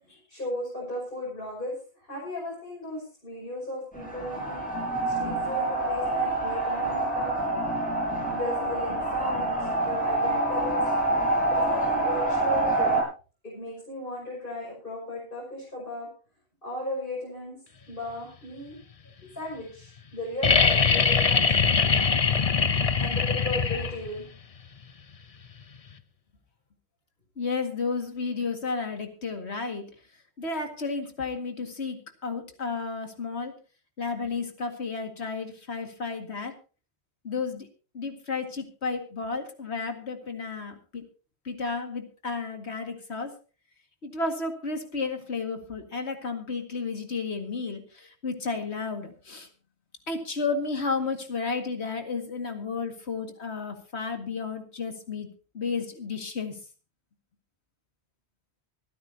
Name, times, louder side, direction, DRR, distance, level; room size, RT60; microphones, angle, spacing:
voice 1, 0.3-4.6 5.1-7.5 8.3-10.8 11.5-12.9 13.4-16.1 16.6-17.6 17.9-18.8 19.3-21.7 23.0-24.2, left 1 dB, 55° left, -4 dB, 6.2 m, -36 dB
sound 1, 3.9-13.0, right 2 dB, 5° left, 6.4 m, -27 dB
sound 2, 20.4-24.2 25.9-26.0, left 5 dB, 40° left, 0.8 m, -22 dB
voice 2, 27.4-29.9 30.4-33.5 34.0-36.5 37.2-37.7 37.9-41.0 41.4-43.3 44.0-49.5 50.1-55.3 55.5-56.6, left 4 dB, 85° left, 5 dB, 2.3 m, -32 dB
25.5 x 9.6 x 2.8 m, 0.35 s
omnidirectional pair, 1.1 m